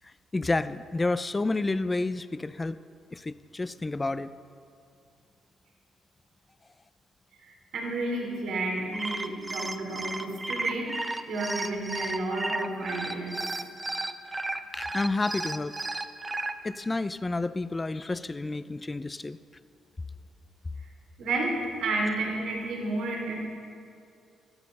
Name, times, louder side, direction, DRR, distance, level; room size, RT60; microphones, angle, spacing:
voice 1, 0.0-2.8 3.1-4.3 14.7-15.8 16.6-19.4, left 2 dB, 20° left, 14 dB, 0.6 m, -30 dB
voice 2, 7.4-13.4 21.2-23.3, right 2 dB, 75° right, -1 dB, 3.6 m, -31 dB
sound 1, 8.8-16.5, right 2 dB, 20° right, 0.9 m, -33 dB
16.0 x 14.5 x 5.4 m, 2.5 s
cardioid pair, 90°, 0 cm